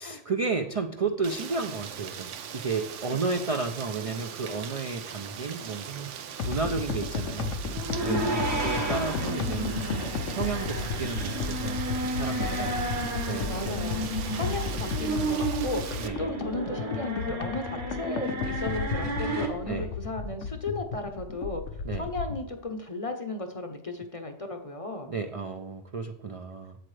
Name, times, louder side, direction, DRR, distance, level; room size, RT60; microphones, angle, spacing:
voice 1, 0.0-6.1 6.4-7.6 8.0-12.8 13.3-13.8 16.0-16.2 19.7-19.9 21.8-22.1 25.1-26.8, right 4 dB, 45° right, 5 dB, 0.4 m, -32 dB
Rain, 1.2-16.1, right 8 dB, 80° right, 1.0 m, -40 dB
sound 1, 6.4-22.4, left 5 dB, 80° left, 1.0 m, -34 dB
sound 2, 7.7-19.5, right 1 dB, 60° right, 1.9 m, -32 dB
voice 2, 8.0-9.0 12.4-13.2 13.5-21.6 21.9-25.1, left 2 dB, 35° left, 6 dB, 0.7 m, -35 dB
7.8 x 7.7 x 3.2 m, 0.78 s
omnidirectional pair, 1.2 m